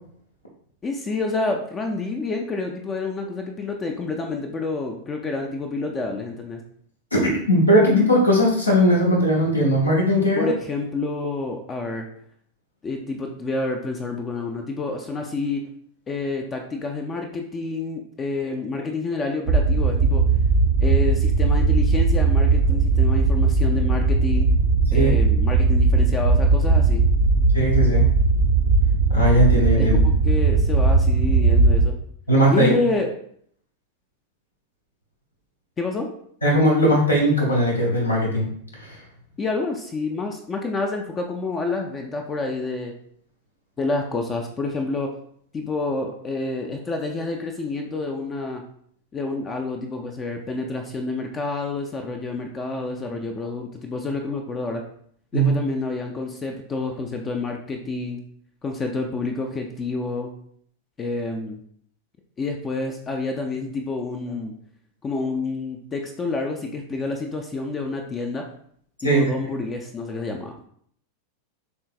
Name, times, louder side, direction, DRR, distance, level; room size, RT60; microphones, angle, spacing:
voice 1, 0.8-6.6 10.4-12.1 12.8-15.6 16.1-20.2 20.8-24.5 24.9-27.1 29.8-31.9 32.5-33.1 35.8-36.1 39.4-42.9 43.8-45.1 45.5-48.6 49.1-54.8 55.3-58.2 58.6-60.3 61.0-61.6 62.4-64.5 65.0-68.4 69.0-70.6, left 3 dB, 20° left, 3 dB, 0.4 m, -28 dB
voice 2, 7.1-10.5 24.9-25.1 27.5-28.1 29.1-30.0 32.3-32.7 36.4-38.5 38.8-39.0 55.3-55.5 69.0-69.3, equal, 80° left, -3 dB, 0.9 m, -19 dB
sound 1, 19.5-31.8, right 4 dB, 60° right, 0.5 m, -18 dB
4.4 x 3.2 x 2.5 m, 0.63 s
figure-of-eight pair, 90°, 0 cm